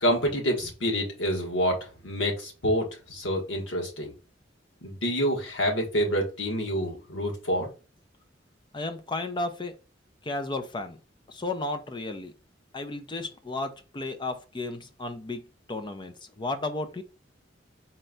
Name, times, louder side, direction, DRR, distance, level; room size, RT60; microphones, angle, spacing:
voice 1, 0.0-4.1 4.8-7.7, equal, 90° left, 1.4 m, -27 dB
voice 2, 8.7-9.7 10.2-11.0 11.3-12.3 12.7-15.4 15.7-17.0, left 2 dB, 25° left, 0.5 m, -33 dB
4.3 x 2.2 x 3.8 m
head